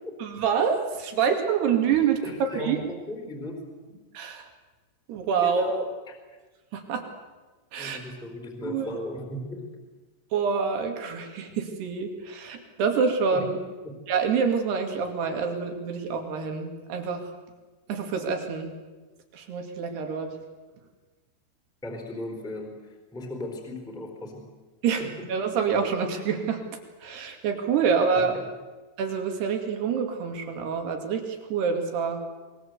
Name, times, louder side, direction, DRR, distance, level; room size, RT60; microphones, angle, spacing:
voice 1, 0.2-2.8 4.1-4.5 5.1-5.6 6.7-7.1 7.7-8.0 8.6-8.9 10.3-13.6 14.1-17.3 17.9-18.7 19.3-20.4 24.8-26.6 27.0-28.4 29.0-32.2, right 6 dB, 60° right, 5 dB, 4.1 m, -27 dB
voice 2, 2.2-3.7 5.4-6.2 7.8-9.7 13.3-13.4 21.8-24.5 25.0-25.1 27.8-27.9 28.1-28.2, left 1 dB, ahead, 4 dB, 3.2 m, -36 dB
25.0 x 21.5 x 8.1 m, 1.3 s
omnidirectional pair, 5.8 m